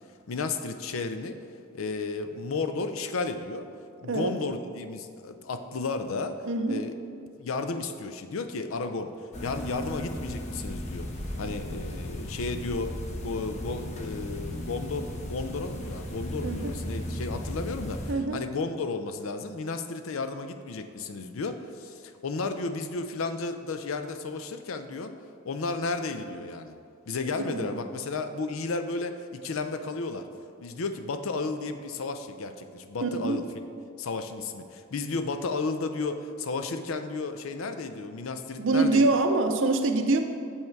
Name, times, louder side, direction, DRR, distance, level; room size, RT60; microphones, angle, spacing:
voice 1, 0.3-1.4 1.7-3.7 4.0-6.9 7.4-9.1 9.4-11.1 11.4-13.0 13.2-25.1 25.4-26.7 27.1-30.3 30.6-33.5 34.0-39.1, left 3 dB, 80° left, 8 dB, 0.5 m, -33 dB
voice 2, 4.0-4.4 6.4-6.9 16.4-16.7 18.1-18.4 27.4-27.7 33.0-33.4 38.6-40.2, right 3 dB, 65° right, 6 dB, 0.6 m, -25 dB
sound 1, 9.3-18.1, left 1 dB, 35° left, 0.7 m, -36 dB
7.1 x 5.5 x 4.6 m, 2.3 s
head